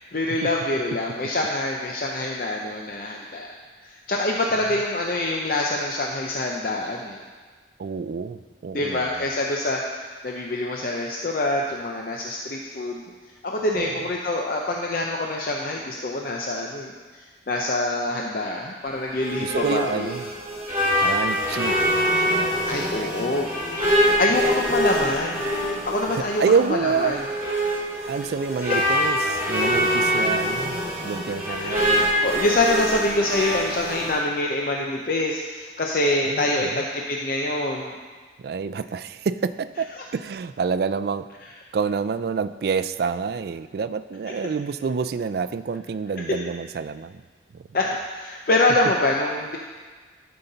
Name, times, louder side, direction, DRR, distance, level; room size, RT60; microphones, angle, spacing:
voice 1, 0.0-3.5 3.8-7.2 8.7-13.0 13.4-20.2 22.7-23.5 24.0-25.5 25.8-26.4 26.7-27.2 31.6-31.9 32.2-37.9 46.2-46.3 47.7-49.6, left 2 dB, 50° left, 0 dB, 0.6 m, -25 dB
voice 2, 7.8-9.1 13.7-14.1 19.4-20.3 21.0-21.8 22.3-22.7 24.3-25.1 26.1-27.2 27.6-27.7 28.1-32.1 36.2-36.8 38.4-41.3 41.7-47.2, right 5 dB, 55° right, 13 dB, 0.3 m, -28 dB
sound 1, 18.9-34.2, equal, 15° right, 2.6 m, -24 dB
12.0 x 5.7 x 3.9 m, 1.5 s
head